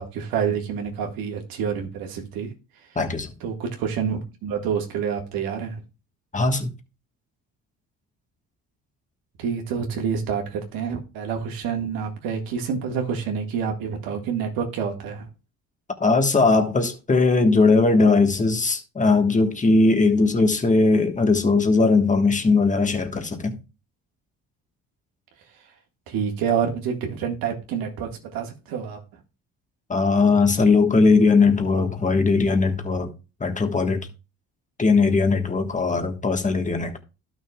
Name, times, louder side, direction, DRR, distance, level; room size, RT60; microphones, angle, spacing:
voice 1, 0.0-2.5 3.4-5.8 9.4-15.3 26.1-29.0, right 7 dB, 85° right, 1.8 m, -28 dB
voice 2, 2.9-3.3 6.3-6.7 16.0-23.6 29.9-33.1 33.4-34.1 34.8-37.0, left 3 dB, 20° left, 1.5 m, -19 dB
12.0 x 6.3 x 2.4 m
cardioid pair, 85°, 34 cm